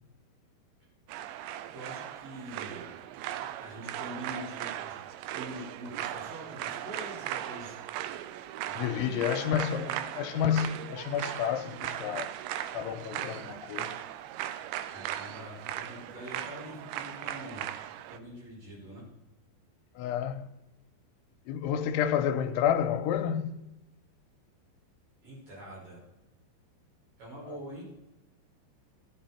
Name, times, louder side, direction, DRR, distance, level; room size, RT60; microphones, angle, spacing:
sound 1, 1.1-18.2, right 12 dB, 80° right, 2.8 m, -38 dB
voice 1, 1.7-2.9 3.6-5.0 5.3-7.8 8.6-10.0 14.9-17.7 18.1-19.0 25.2-26.0 27.2-27.9, right 1 dB, 45° right, 7.3 m, -44 dB
voice 2, 8.7-9.9 10.2-12.3 12.7-14.0 20.0-20.5 21.5-23.6 27.5-27.6, left 9 dB, 90° left, 3.0 m, -30 dB
14.5 x 11.0 x 4.4 m
omnidirectional pair, 5.4 m